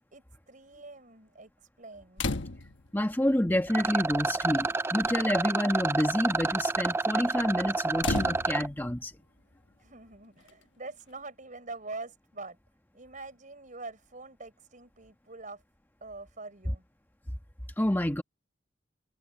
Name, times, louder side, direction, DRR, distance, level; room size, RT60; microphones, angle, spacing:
voice 1, 0.1-1.5 1.8-2.2 9.8-12.6 12.9-15.6 16.0-16.8, right 3 dB, 45° right, 5.9 m, -44 dB
sound 1, 2.2-2.9 4.0-4.1 4.4-4.7 5.0-5.3 8.0-8.9 10.5-10.6, left 3 dB, 85° left, 1.3 m, -33 dB
voice 2, 2.9-9.1 17.8-18.2, left 1 dB, 10° left, 1.2 m, -28 dB
Rattle, 3.7-8.7, right 3 dB, 15° right, 0.3 m, -29 dB
head